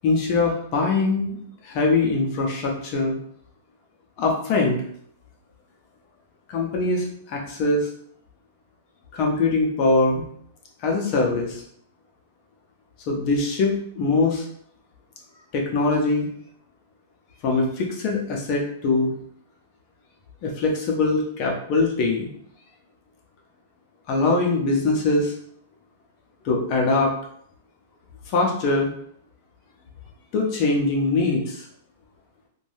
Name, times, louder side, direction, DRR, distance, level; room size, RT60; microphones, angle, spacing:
voice 1, 0.0-1.4 1.6-3.1 4.2-4.8 6.5-7.9 9.1-10.2 10.8-11.6 13.1-14.4 15.5-16.3 17.4-19.1 20.4-22.3 24.1-25.3 26.4-27.1 28.3-28.9 30.3-31.6, left 3 dB, 30° left, 0 dB, 0.5 m, -22 dB
3.2 x 2.2 x 2.6 m, 0.64 s
supercardioid pair, 170°, 0 cm